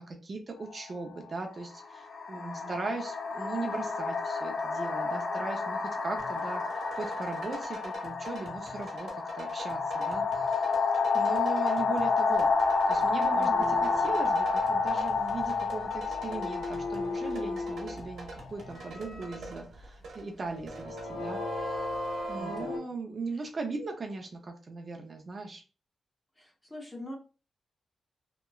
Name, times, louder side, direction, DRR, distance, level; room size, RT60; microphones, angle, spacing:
voice 1, 0.0-10.9 11.1-12.6 12.9-21.8 22.3-25.6, right 3 dB, 40° right, 3 dB, 0.4 m, -39 dB
sound 1, 0.6-0.8 1.7-18.4, left 4 dB, 70° left, 0.5 m, -30 dB
voice 2, 2.3-3.0 13.3-13.8 22.3-22.9 23.3-23.5 26.4-27.1, equal, 20° left, 0 dB, 0.8 m, -45 dB
sound 2, 6.2-21.1, right 2 dB, 80° right, 0.9 m, -47 dB
sound 3, 12.4-19.8 20.4-22.8, left 2 dB, 90° left, 1.2 m, -38 dB
2.9 x 2.2 x 2.3 m, 0.34 s
cardioid pair, 110°, 0 cm